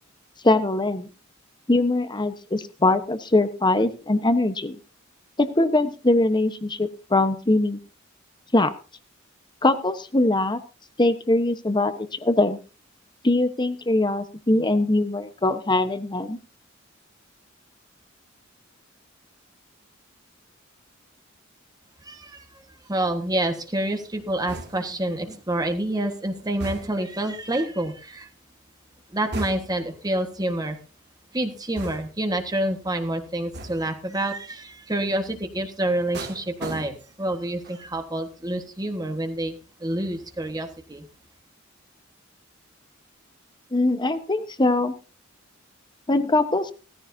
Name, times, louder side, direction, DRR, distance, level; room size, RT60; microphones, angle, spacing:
voice 1, 0.4-1.1 1.7-4.8 5.4-7.8 8.5-8.7 9.6-10.6 11.0-12.6 13.2-16.4 43.7-44.9 46.1-46.7, left 2 dB, 20° left, 10 dB, 1.1 m, -22 dB
voice 2, 22.0-22.5 22.9-28.3 29.1-30.8 31.3-41.1, right 1 dB, 20° right, 6 dB, 1.5 m, -28 dB
sound 1, 24.5-25.0 26.6-27.2 29.3-29.9 31.8-32.3 33.5-34.0 36.1-37.3 37.6-38.0, right 2 dB, 55° right, 2.4 m, -37 dB
16.5 x 14.5 x 2.7 m, 0.34 s
head